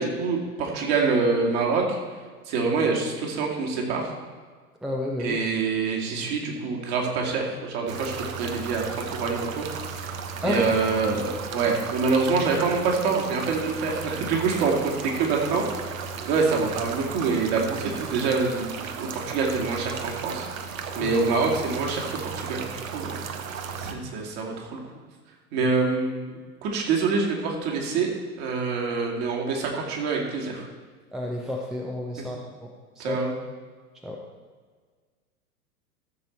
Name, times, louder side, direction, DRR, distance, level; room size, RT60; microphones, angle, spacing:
voice 1, 0.0-2.0 2.5-4.1 5.2-8.1 8.4-9.7 9.9-10.1 10.4-15.9 16.3-20.7 20.9-23.2 23.8-24.8 25.5-28.1 28.4-30.7 33.0-33.4, right 4 dB, 45° right, -1 dB, 2.4 m, -26 dB
voice 2, 4.8-5.4 10.4-10.7 21.0-21.1 31.1-32.7 33.1-33.2 34.0-34.2, left 1 dB, ahead, 0 dB, 0.6 m, -30 dB
sound 1, 7.9-23.9, right 6 dB, 60° right, 1.1 m, -35 dB
14.0 x 6.9 x 4.5 m, 1.5 s
figure-of-eight pair, 95°, 46 cm